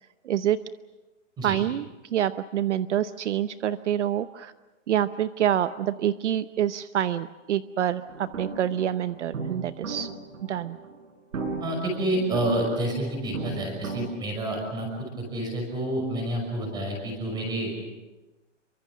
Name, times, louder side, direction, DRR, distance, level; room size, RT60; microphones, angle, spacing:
voice 1, 0.2-0.6 1.4-4.5 4.9-10.1 10.5-10.8, right 11 dB, 65° right, 13 dB, 0.8 m, -26 dB
sound 1, 8.1-14.1, right 4 dB, 90° right, 6.0 m, -36 dB
voice 2, 11.6-14.9 15.2-17.9, right 1 dB, 10° right, 2 dB, 5.8 m, -29 dB
28.0 x 24.0 x 6.3 m, 1.1 s
hypercardioid pair, 180°, 38 cm